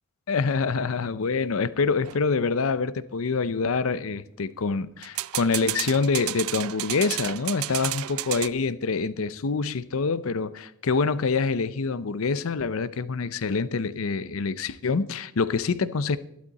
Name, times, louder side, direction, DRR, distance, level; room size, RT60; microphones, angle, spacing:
voice 1, 0.3-16.2, left 4 dB, 70° left, 0.6 m, -26 dB
sound 1, 2.0-2.2 5.0-8.5, right 16 dB, 75° right, 0.4 m, -32 dB
12.0 x 12.0 x 4.1 m
head